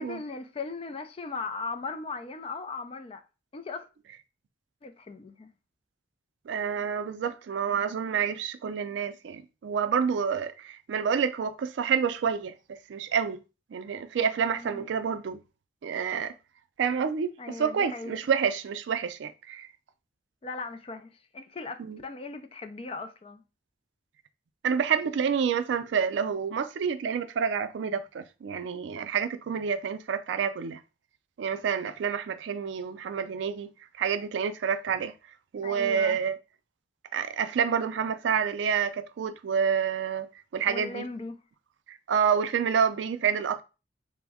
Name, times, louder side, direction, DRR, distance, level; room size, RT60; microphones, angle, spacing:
voice 1, 0.0-3.2 3.5-3.9 4.8-5.5 14.5-14.8 17.4-18.2 20.4-23.4 35.6-36.2 40.7-41.4, left 4 dB, 30° left, 0.3 m, -38 dB
voice 2, 6.5-12.5 12.9-13.4 13.7-15.4 15.8-16.3 16.8-19.7 21.8-22.0 24.6-30.8 31.4-33.7 34.0-35.1 35.5-36.4 37.1-40.3 40.5-41.0 41.9-43.6, right 7 dB, 85° right, 0.3 m, -28 dB
3.4 x 2.1 x 3.4 m
head